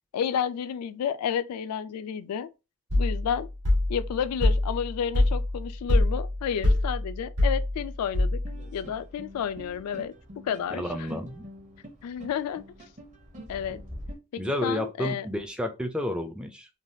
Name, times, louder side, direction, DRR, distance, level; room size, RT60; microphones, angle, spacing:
voice 1, 0.1-2.5 3.0-3.5 3.9-8.4 8.7-10.1 10.4-11.1 12.0-12.6 13.5-13.8 14.3-15.3, left 8 dB, 85° left, 0.3 m, -31 dB
sound 1, 2.9-8.7, left 1 dB, 85° right, 1.3 m, -25 dB
sound 2, 8.4-14.1, equal, 30° right, 0.7 m, -44 dB
voice 2, 10.7-11.5 14.4-16.7, left 1 dB, 5° right, 0.3 m, -31 dB
3.3 x 2.3 x 2.6 m
head